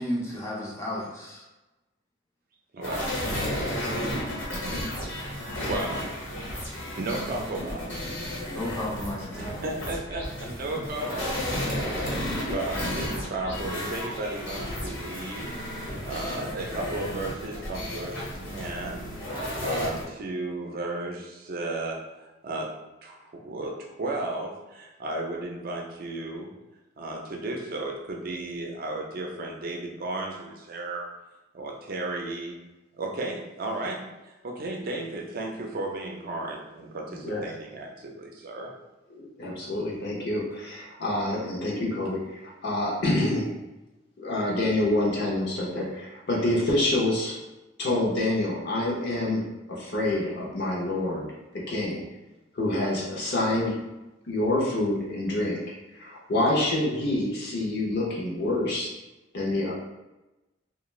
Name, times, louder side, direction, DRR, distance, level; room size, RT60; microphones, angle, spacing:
voice 1, 0.0-1.5 3.7-4.0 8.5-9.5, left 1 dB, 15° left, -3 dB, 0.4 m, -33 dB
voice 2, 2.7-3.2 5.7-6.0 7.0-8.3 9.3-15.6 16.0-18.2 18.5-19.1 19.6-22.7 23.0-26.5 27.0-31.1 31.5-32.6 32.9-38.7, right 2 dB, 50° right, 0 dB, 0.5 m, -34 dB
sound 1, 2.8-20.0, left 1 dB, 70° left, 1.1 m, -33 dB
voice 3, 39.2-43.5 44.2-47.4 47.8-49.4 49.7-51.3 51.7-52.0 52.5-53.8 54.3-55.6 55.9-58.9 59.3-59.7, left 1 dB, 55° left, -4 dB, 0.6 m, -27 dB
2.4 x 2.2 x 3.1 m, 1.0 s
head